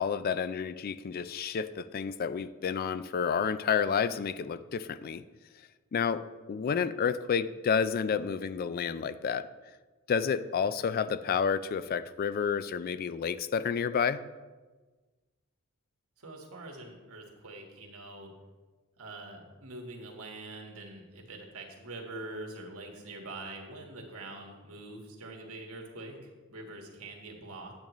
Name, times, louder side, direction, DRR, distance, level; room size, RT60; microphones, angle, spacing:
voice 1, 0.0-5.2 5.9-6.2 6.5-9.5 10.1-14.3, left 6 dB, 45° left, 14 dB, 0.3 m, -30 dB
voice 2, 16.2-18.3 19.0-27.7, right 2 dB, 90° right, 1 dB, 1.5 m, -44 dB
8.8 x 8.6 x 3.1 m, 1.3 s
head